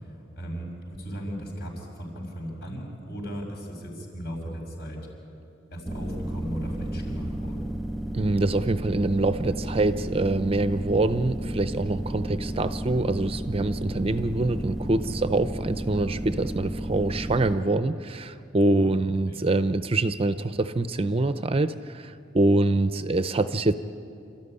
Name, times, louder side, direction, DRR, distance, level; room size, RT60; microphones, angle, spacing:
voice 1, 0.4-5.0 5.7-7.7 18.8-19.5, equal, 60° left, -1 dB, 6.2 m, -36 dB
sound 1, 5.9-17.5, right 1 dB, ahead, 1.2 m, -33 dB
voice 2, 8.1-23.7, right 2 dB, 30° right, 11 dB, 0.6 m, -25 dB
28.0 x 13.5 x 9.8 m, 2.6 s
head